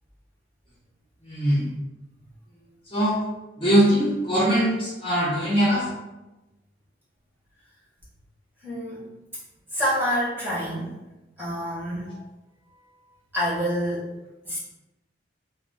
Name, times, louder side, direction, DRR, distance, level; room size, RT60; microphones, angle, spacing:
voice 1, 1.2-1.7 2.9-3.2 3.6-5.9, equal, 25° left, -7 dB, 0.6 m, -21 dB
voice 2, 8.6-9.0 9.7-10.9 11.4-12.1 13.3-14.1 14.4-14.6, equal, 10° right, -9 dB, 0.9 m, -27 dB
2.5 x 2.0 x 3.3 m, 1.0 s
head